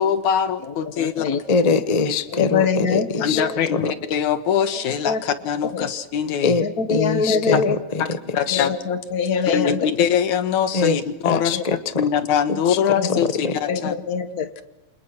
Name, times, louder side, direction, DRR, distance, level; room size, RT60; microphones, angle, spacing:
voice 1, 0.0-1.3 3.2-6.5 8.0-8.1 8.3-8.7 9.5-11.5 12.0-14.0, left 8 dB, 80° left, 9 dB, 2.9 m, -22 dB
voice 2, 1.0-1.4 2.4-3.1 3.4-3.5 5.1-5.2 5.7-5.9 6.8-7.8 8.5-9.8 11.5-11.6 13.0-13.1 13.7-14.5, left 5 dB, 35° left, 8 dB, 1.9 m, -23 dB
voice 3, 1.5-3.4 3.7-3.9 6.4-8.2 8.5-8.7 10.7-11.0 11.2-12.0 12.5-13.2 13.4-13.6, left 4 dB, 55° left, 9 dB, 0.4 m, -23 dB
29.0 x 27.5 x 6.1 m, 0.98 s
omnidirectional pair, 3.4 m